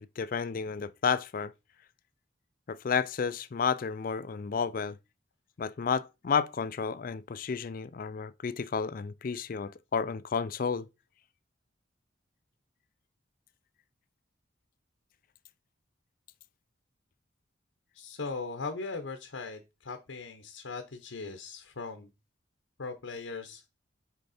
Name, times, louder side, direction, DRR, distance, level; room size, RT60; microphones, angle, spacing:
voice 1, 0.0-1.5 2.7-5.0 5.6-10.9, left 6 dB, 45° left, 0.4 m, -31 dB
voice 2, 17.9-22.1 22.8-23.6, left 4 dB, 90° left, 0.9 m, -39 dB
6.4 x 4.6 x 4.2 m
head